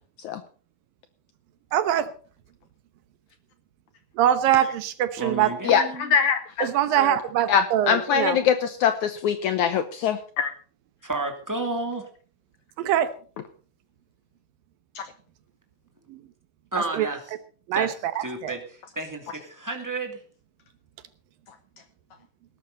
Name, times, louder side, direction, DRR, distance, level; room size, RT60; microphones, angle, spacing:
voice 1, 1.7-2.1 4.1-5.5 6.6-8.4 12.8-13.1 16.1-16.2 16.8-17.1 17.7-18.5, right 11 dB, 75° right, 12 dB, 2.7 m, -23 dB
voice 2, 5.2-6.1 11.0-12.0 16.7-17.2 17.7-17.9 18.2-18.6 19.0-20.2, right 2 dB, 5° right, 3 dB, 2.0 m, -31 dB
voice 3, 5.7-6.7 7.5-8.6 8.8-10.5 15.0-15.1, left 7 dB, 70° left, 10 dB, 1.9 m, -22 dB
19.0 x 11.5 x 4.1 m, 0.41 s
omnidirectional pair, 4.2 m